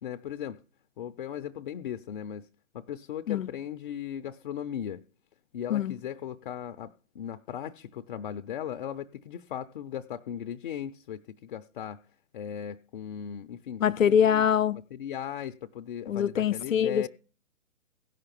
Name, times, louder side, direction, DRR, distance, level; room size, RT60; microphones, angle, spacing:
voice 1, 0.0-0.6 1.0-2.5 2.7-5.0 5.5-12.0 12.3-14.4 14.9-17.1, left 9 dB, 40° left, 0.5 m, -37 dB
voice 2, 13.8-14.8 16.1-17.1, left 8 dB, 85° left, 0.6 m, -24 dB
16.5 x 5.8 x 5.2 m
hypercardioid pair, 135°, 38 cm